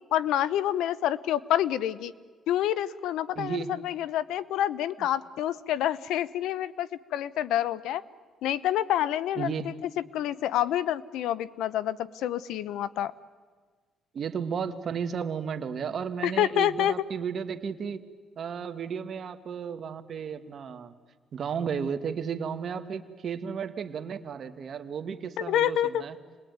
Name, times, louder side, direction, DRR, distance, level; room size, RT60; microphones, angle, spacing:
voice 1, 0.1-2.1 2.5-8.0 8.4-9.5 10.1-13.1 16.2-16.9 25.4-26.0, left 11 dB, 85° left, 18 dB, 0.8 m, -27 dB
voice 2, 3.4-3.7 9.4-9.7 14.1-18.0 18.4-20.9 21.3-26.2, right 7 dB, 55° right, 8 dB, 1.7 m, -33 dB
28.0 x 20.5 x 9.4 m, 1.5 s
cardioid pair, 90°, 0 cm